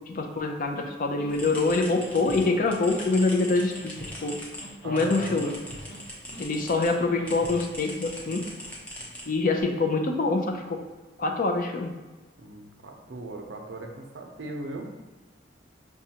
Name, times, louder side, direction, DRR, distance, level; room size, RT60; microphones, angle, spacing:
voice 1, 0.1-4.3 4.8-5.5 6.4-8.5 9.3-10.8 11.2-11.9, left 3 dB, 45° left, 3 dB, 0.5 m, -25 dB
sound 1, 0.8-0.9 1.2-1.5 1.8-2.6 2.9-3.2 3.5-4.3 4.6-5.0 5.3-6.0 6.3-6.7 7.0-7.6, equal, 80° left, 1.1 m, -44 dB
sound 2, 1.3-6.9 7.2-9.6, equal, 10° left, 0.8 m, -41 dB
voice 2, 4.8-5.6 12.4-14.9, right 2 dB, 75° right, 2 dB, 0.6 m, -38 dB
6.0 x 2.2 x 2.8 m, 1.2 s
head